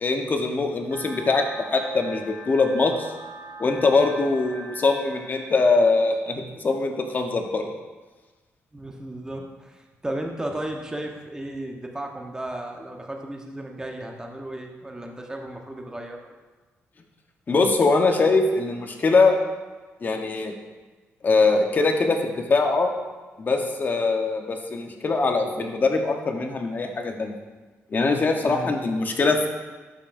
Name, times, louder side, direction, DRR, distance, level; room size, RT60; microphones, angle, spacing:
voice 1, 0.0-1.4 1.7-3.1 3.6-7.7 17.5-19.4 20.0-20.5 21.2-22.9 23.4-27.3 27.9-29.5, left 3 dB, 40° left, 3 dB, 1.0 m, -22 dB
sound 1, 0.9-5.9, right 1 dB, 75° right, 1.6 m, -41 dB
voice 2, 8.7-16.3 28.5-28.7, right 1 dB, 15° right, 1 dB, 1.1 m, -34 dB
11.5 x 5.5 x 2.6 m, 1.3 s
cardioid pair, 90°, 5 cm